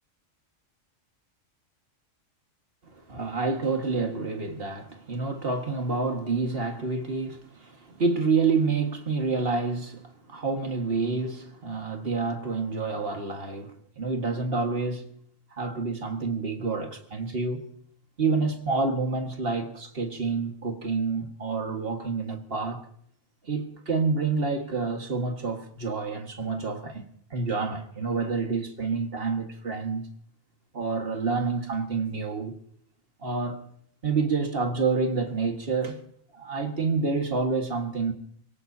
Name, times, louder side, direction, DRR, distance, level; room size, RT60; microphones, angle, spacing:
voice 1, 2.9-15.1 15.6-17.7 18.2-22.9 23.4-27.1 27.3-30.1 30.7-32.6 33.2-33.6 34.0-36.0 36.3-38.1, right 4 dB, 45° right, 1.9 m, -28 dB
27.0 x 17.5 x 2.8 m
omnidirectional pair, 1.3 m